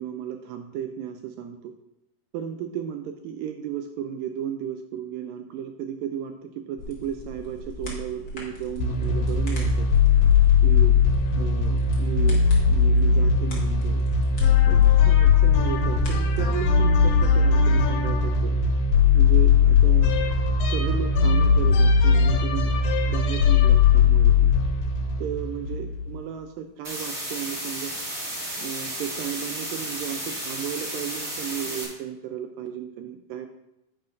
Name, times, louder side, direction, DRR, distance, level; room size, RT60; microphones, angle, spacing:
voice 1, 0.0-1.7 2.3-9.9 10.6-11.0 11.4-14.0 14.7-18.6 19.1-20.1 20.6-22.7 23.1-24.5 25.2-27.9 28.6-33.5, right 9 dB, 85° right, 6 dB, 2.0 m, -34 dB
sound 1, 6.8-16.4, left 1 dB, 45° left, 1.4 m, -40 dB
sound 2, 8.8-26.1, left 5 dB, 85° left, 2.8 m, -19 dB
sound 3, 26.8-31.8, right 1 dB, 25° right, 1.5 m, -33 dB
9.8 x 8.5 x 2.6 m, 0.86 s
omnidirectional pair, 4.4 m